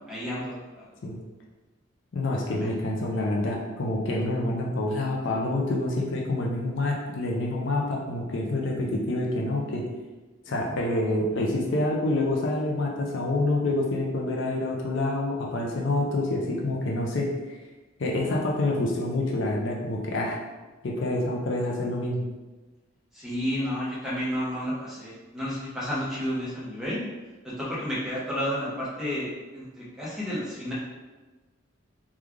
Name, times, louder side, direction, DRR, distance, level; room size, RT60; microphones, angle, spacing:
voice 1, 0.1-0.8 2.5-2.7 10.6-10.7 23.1-27.0 27.6-30.7, equal, ahead, -9 dB, 0.9 m, -31 dB
voice 2, 2.1-9.8 10.5-17.6 18.0-20.4 20.8-22.2, left 2 dB, 65° left, -1 dB, 0.5 m, -27 dB
3.1 x 2.3 x 3.6 m, 1.2 s
head